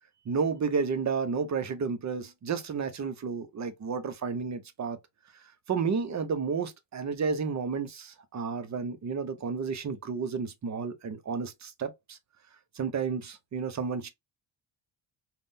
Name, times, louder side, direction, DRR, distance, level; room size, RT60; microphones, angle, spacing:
voice 1, 0.3-5.0 5.7-12.2 12.8-14.1, right 5 dB, 35° right, 0.5 m, -31 dB
3.6 x 2.1 x 2.5 m
wide cardioid pair, 155°, 49 cm